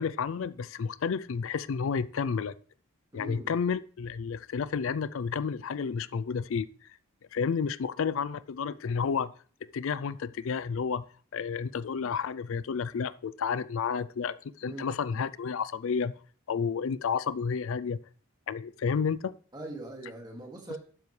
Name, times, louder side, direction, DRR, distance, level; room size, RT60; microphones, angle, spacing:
voice 1, 0.0-2.5 3.1-6.7 7.3-9.3 9.7-11.0 11.3-16.1 16.5-18.0 18.5-19.3, left 6 dB, 65° left, 0.4 m, -31 dB
voice 2, 3.1-3.5 14.7-14.9 19.5-20.8, right 2 dB, 20° right, 2.2 m, -41 dB
12.0 x 9.1 x 3.3 m
head